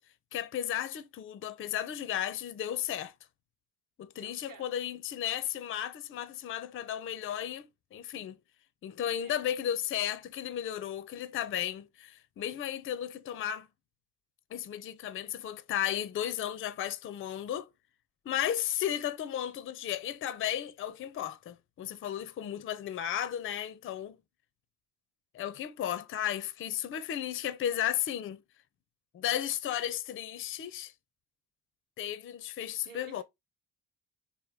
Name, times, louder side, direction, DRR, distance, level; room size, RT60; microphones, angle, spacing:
voice 1, 0.3-3.1 4.0-8.4 8.8-13.7 14.5-17.7 18.3-24.2 25.3-28.4 29.1-30.9 32.0-33.2, left 10 dB, 30° left, 0.4 m, -34 dB
voice 2, 4.1-4.7 9.1-9.5 32.9-33.2, right 7 dB, 45° right, 0.9 m, -52 dB
3.5 x 2.2 x 3.1 m
hypercardioid pair, 45°, 49 cm